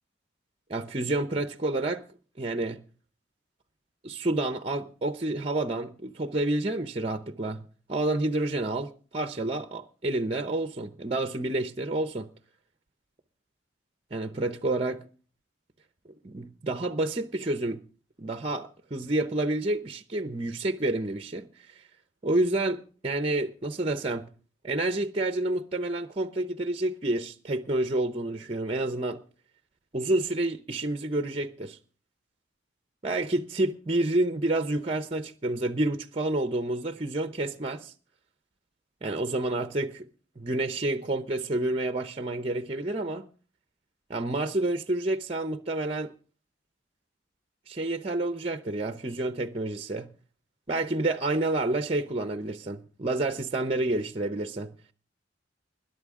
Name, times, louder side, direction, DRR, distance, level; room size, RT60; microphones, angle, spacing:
voice 1, 0.7-2.0 2.4-2.8 4.0-7.6 7.9-12.3 14.1-15.0 16.2-17.8 18.2-21.8 22.2-24.3 24.6-29.2 29.9-31.8 33.0-37.9 39.0-40.1 40.4-43.3 44.1-46.1 47.7-50.1 50.7-54.7, right 2 dB, 35° right, 0.7 m, -29 dB
21.5 x 11.5 x 3.7 m
head